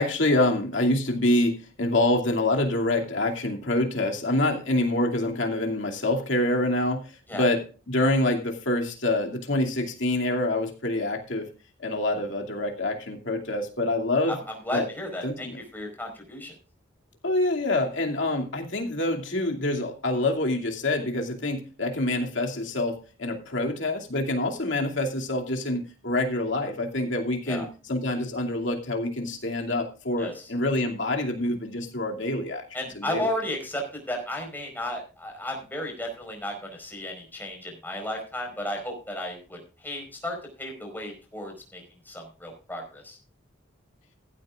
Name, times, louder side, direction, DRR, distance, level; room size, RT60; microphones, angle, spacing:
voice 1, 0.0-7.6 7.9-11.5 11.8-14.4 14.7-14.9 15.2-15.6 17.2-32.6 33.0-33.3, left 1 dB, 65° left, 2 dB, 2.6 m, -26 dB
voice 2, 14.6-15.5 15.7-16.5 27.5-27.6 30.2-30.5 32.7-43.2, left 1 dB, 10° left, 2 dB, 4.7 m, -34 dB
15.0 x 12.5 x 2.5 m, 0.33 s
head